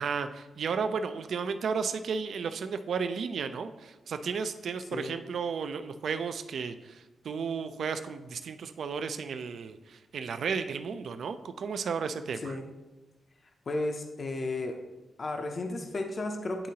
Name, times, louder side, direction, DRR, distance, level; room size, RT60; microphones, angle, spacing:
voice 1, 0.0-12.6, right 5 dB, 65° right, 9 dB, 0.3 m, -33 dB
voice 2, 13.7-14.8 15.2-16.7, left 2 dB, 35° left, 4 dB, 0.5 m, -33 dB
9.9 x 3.7 x 2.8 m, 1.2 s
wide cardioid pair, 145°, 0 cm